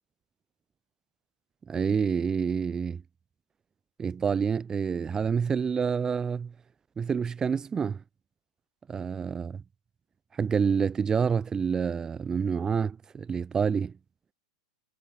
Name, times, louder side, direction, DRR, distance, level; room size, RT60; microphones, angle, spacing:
voice 1, 1.7-3.0 4.0-6.5 7.0-8.0 8.9-9.6 10.4-13.9, right 6 dB, 20° right, 2.4 m, -28 dB
hypercardioid pair, 95°, 3 cm